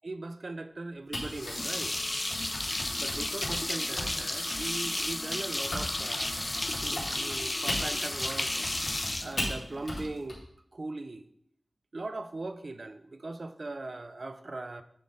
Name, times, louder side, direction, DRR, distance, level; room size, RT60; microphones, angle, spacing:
voice 1, 0.0-2.0 3.0-6.4 6.8-8.5 9.2-10.4 10.7-11.3 11.9-14.8, right 2 dB, 55° right, 10 dB, 0.4 m, -39 dB
Typing, 1.1-5.9 6.2-10.4, left 1 dB, 75° left, 2.4 m, -37 dB
sound 1, 1.3-10.1, left 1 dB, 30° left, 0.3 m, -33 dB
sound 2, 4.5-4.8 5.3-5.4 6.0-6.6 7.3-8.8 9.6-9.7 9.9-10.0 10.2-10.3, equal, 10° right, 0.9 m, -46 dB
8.5 x 3.7 x 3.8 m, 0.73 s
wide cardioid pair, 75°, 0 cm